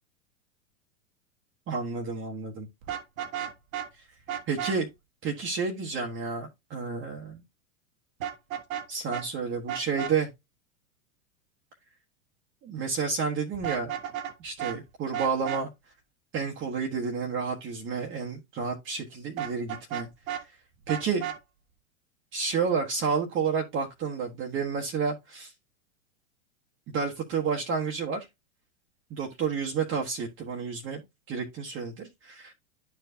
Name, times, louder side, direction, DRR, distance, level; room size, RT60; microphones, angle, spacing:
voice 1, 1.7-2.7 4.5-4.9 5.2-7.4 8.9-10.3 12.6-13.9 14.4-15.7 16.3-20.1 20.9-21.3 22.3-25.5 26.9-28.3 29.1-31.0 31.3-32.5, right 5 dB, 30° right, 1.2 m, -30 dB
Vehicle horn car horn honking, 2.8-3.9 4.3-4.8 8.2-8.9 9.1-9.2 9.7-10.1 13.5-14.3 14.6-14.8 15.1-15.6 19.4-20.4 20.9-21.4, right 10 dB, 70° right, 1.3 m, -33 dB
10.5 x 4.6 x 2.7 m
hypercardioid pair, 105°, 41 cm